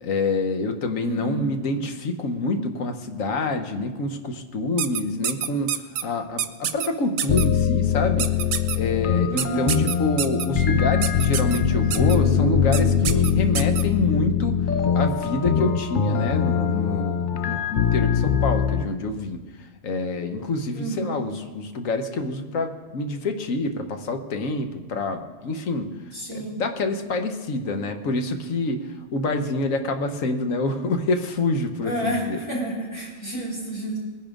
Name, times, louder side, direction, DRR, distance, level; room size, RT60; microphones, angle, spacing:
voice 1, 0.0-8.3 8.7-14.6 14.9-25.9 26.3-32.4, left 2 dB, 75° left, 6 dB, 1.4 m, -27 dB
voice 2, 1.0-1.4 9.3-9.7 20.7-21.1 26.1-26.6 31.8-34.0, right 1 dB, 20° left, -5 dB, 3.3 m, -30 dB
sound 1, 4.8-6.0 6.4-6.9 7.2-7.5 8.2-8.8 9.4-10.5 11.0-11.6 11.9-12.2 12.7-12.8 13.1-13.8, right 9 dB, 80° right, 1.1 m, -26 dB
sound 2, 7.3-18.8, left 8 dB, 55° left, 0.6 m, -22 dB
20.5 x 10.0 x 3.7 m, 1.3 s
omnidirectional pair, 1.4 m